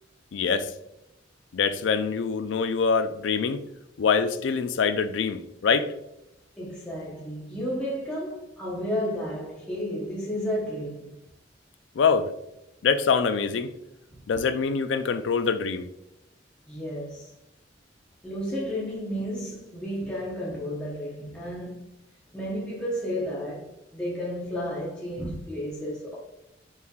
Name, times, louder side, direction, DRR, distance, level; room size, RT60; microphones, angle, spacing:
voice 1, 0.3-0.7 1.5-3.6 4.0-5.9 12.0-12.3 12.8-13.7 14.3-15.9, left 5 dB, 75° left, 0.4 m, -24 dB
voice 2, 6.6-11.1 14.1-14.2 16.7-17.3 18.2-21.9 22.3-26.2, equal, 5° left, 0.8 m, -32 dB
5.4 x 3.2 x 2.3 m
head